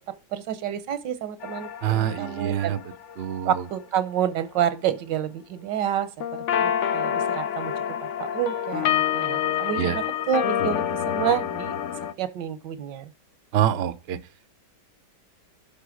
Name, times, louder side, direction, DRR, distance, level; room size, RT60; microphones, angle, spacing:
voice 1, 0.1-2.8 3.4-7.7 8.0-11.7 12.2-13.1, right 9 dB, 85° right, 1.5 m, -29 dB
sound 1, 1.4-3.5 6.2-12.1, left 9 dB, 60° left, 0.8 m, -27 dB
voice 2, 1.8-2.8 3.2-3.5 9.8-10.0 13.5-14.2, right 11 dB, 55° right, 0.7 m, -25 dB
11.0 x 4.3 x 6.4 m
omnidirectional pair, 1.9 m